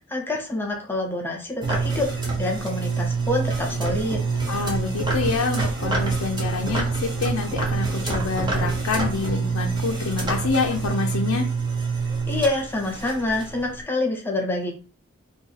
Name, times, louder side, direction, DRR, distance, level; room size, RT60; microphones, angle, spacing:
voice 1, 0.1-4.2 12.3-14.7, left 2 dB, 10° left, -1 dB, 0.7 m, -26 dB
sound 1, 1.6-13.8, right 4 dB, 20° right, 0.8 m, -26 dB
voice 2, 4.5-11.5, left 4 dB, 85° left, 1 dB, 0.5 m, -27 dB
2.7 x 2.7 x 3.9 m, 0.38 s
head